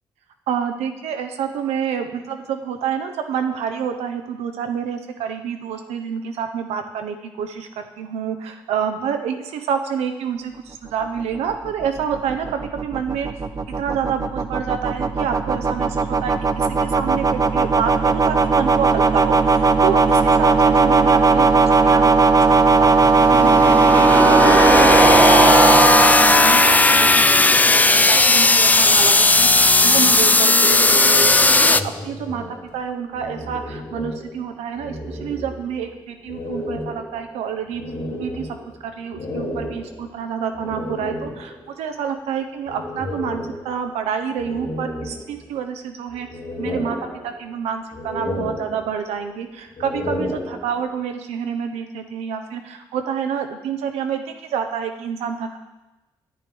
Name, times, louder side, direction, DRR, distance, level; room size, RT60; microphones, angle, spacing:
voice 1, 0.5-13.3 13.8-37.8 38.1-46.3 46.6-55.6, right 7 dB, 85° right, 6 dB, 0.8 m, -28 dB
sound 1, 11.2-27.4, right 4 dB, 35° right, 0.6 m, -17 dB
sound 2, 22.5-31.8, left 2 dB, 15° left, 0.3 m, -15 dB
sound 3, 31.7-34.5 34.7-35.9 36.3-41.7 42.7-44.0 44.4-45.7 46.1-47.6 47.9-49.2 49.7-51.0, left 1 dB, 75° left, 2.5 m, -32 dB
10.5 x 9.0 x 3.4 m, 1.1 s
supercardioid pair, 55°, 11 cm